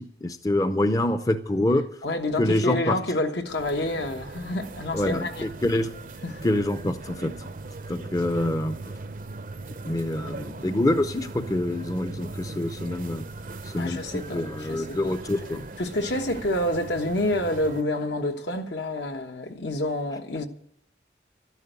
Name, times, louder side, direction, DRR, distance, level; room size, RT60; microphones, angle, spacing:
voice 1, 0.0-1.8 2.4-3.0 4.9-5.9 6.4-7.5 7.9-9.0 9.8-13.3 13.6-15.6, left 1 dB, 20° left, 0.6 m, -26 dB
voice 2, 2.0-5.5 6.2-6.4 13.8-15.1 15.8-20.5, left 1 dB, 75° left, 1.3 m, -28 dB
sound 1, 3.4-17.8, right 2 dB, 45° right, 0.6 m, -39 dB
12.5 x 10.5 x 8.0 m
head